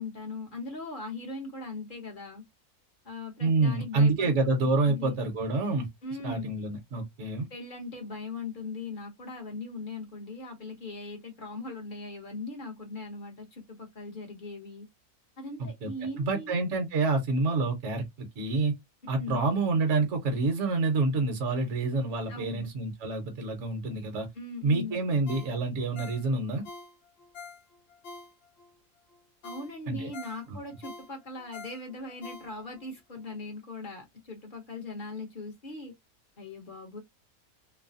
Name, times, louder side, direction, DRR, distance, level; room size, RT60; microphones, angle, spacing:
voice 1, 0.0-2.4 3.0-4.3 4.8-5.2 6.0-6.5 7.5-14.9 15.4-16.5 19.1-19.4 22.3-22.7 24.3-25.0 29.4-35.9 36.4-37.0, left 3 dB, 40° left, 1.0 m, -39 dB
voice 2, 3.4-5.9 6.2-7.5 15.6-15.9 16.2-18.7 19.1-24.3 24.6-26.6 29.9-30.1 30.5-30.6, right 3 dB, 60° right, 1.1 m, -27 dB
Ringtone, 25.3-28.7 29.1-29.2 29.4-32.9 33.3-33.4, left 3 dB, 85° left, 0.5 m, -46 dB
3.2 x 2.1 x 2.5 m
omnidirectional pair, 1.6 m